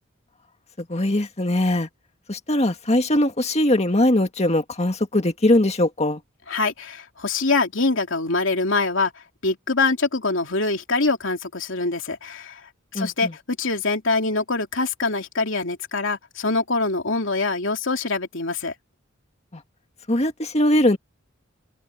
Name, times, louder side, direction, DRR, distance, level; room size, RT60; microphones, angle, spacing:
voice 1, 0.8-1.9 2.3-6.2 12.9-13.3 19.5-19.6 20.1-21.0, left 1 dB, 30° left, 2.0 m, -21 dB
voice 2, 6.5-9.1 9.4-12.6 12.9-18.7, left 3 dB, 70° left, 3.0 m, -24 dB
open air
head